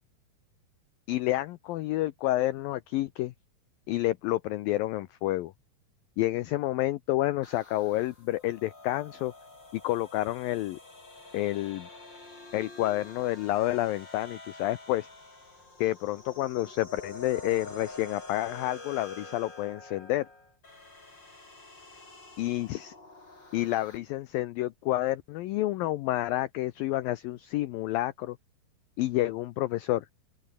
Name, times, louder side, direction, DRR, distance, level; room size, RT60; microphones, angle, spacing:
voice 1, 1.1-3.3 3.9-5.5 6.2-9.3 9.7-10.8 11.3-11.9 12.5-15.1 15.8-20.3 22.4-22.9 23.5-28.4 29.0-30.1, left 16 dB, 90° left, 2.0 m, -29 dB
sound 1, 7.4-24.0, left 2 dB, 25° left, 6.7 m, -48 dB
open air
omnidirectional pair, 5.1 m